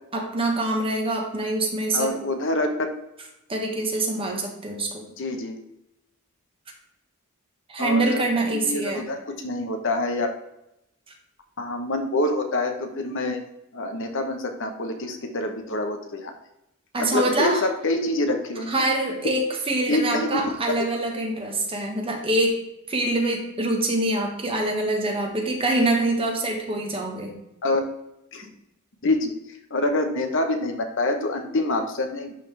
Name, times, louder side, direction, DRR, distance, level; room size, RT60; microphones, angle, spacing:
voice 1, 0.1-2.1 3.5-5.0 7.7-9.1 16.9-17.6 18.7-27.3, right 2 dB, 25° right, 2 dB, 1.2 m, -25 dB
voice 2, 1.9-2.7 5.2-5.6 7.8-10.3 11.6-13.4 13.7-16.3 17.0-18.8 19.9-20.4 27.6-27.9 28.3-28.5 29.0-29.3 29.7-32.3, left 2 dB, 60° left, 5 dB, 0.9 m, -26 dB
11.0 x 3.8 x 3.3 m, 0.84 s
head